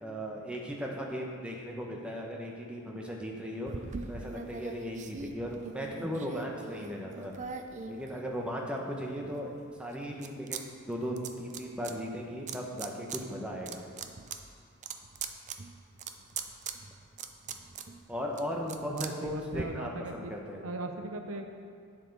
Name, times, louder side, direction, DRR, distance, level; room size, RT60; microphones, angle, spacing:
voice 1, 0.0-3.7 4.1-7.3 7.9-10.6 10.9-13.8 18.1-20.6, equal, 5° right, -1 dB, 0.9 m, -37 dB
sound 1, 3.7-8.7 9.2-10.6 10.9-11.9 12.5-13.2 13.6-19.6, right 5 dB, 35° right, 0.4 m, -42 dB
voice 2, 18.9-20.3 20.6-21.6, right 2 dB, 70° right, 5 dB, 0.7 m, -39 dB
9.1 x 7.7 x 5.3 m, 2.2 s
head